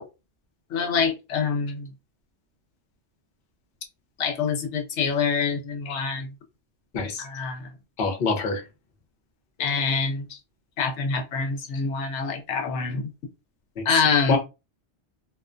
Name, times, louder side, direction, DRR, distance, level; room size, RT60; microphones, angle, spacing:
voice 1, 0.7-1.9 4.2-6.3 7.2-7.7 9.6-10.2 10.8-13.1 13.9-14.4, left 5 dB, 85° left, 0.9 m, -25 dB
voice 2, 8.0-8.6 13.8-13.9 14.3-14.4, left 4 dB, 60° left, 0.8 m, -25 dB
2.4 x 2.1 x 2.4 m
omnidirectional pair, 1.2 m